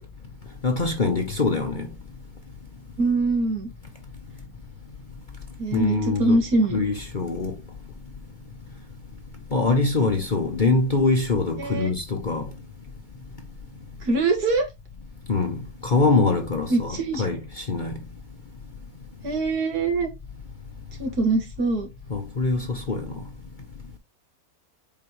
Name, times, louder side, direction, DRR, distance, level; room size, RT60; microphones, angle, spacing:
voice 1, 0.6-1.9 5.7-6.4 6.7-7.6 9.5-12.5 15.3-18.0 22.1-23.2, left 3 dB, 40° left, 0.9 m, -24 dB
voice 2, 3.0-3.7 5.6-6.8 11.6-11.9 14.0-14.7 16.7-17.2 19.2-20.1 21.0-21.9, right 2 dB, 85° right, 2.3 m, -23 dB
7.3 x 5.0 x 3.1 m
omnidirectional pair, 1.6 m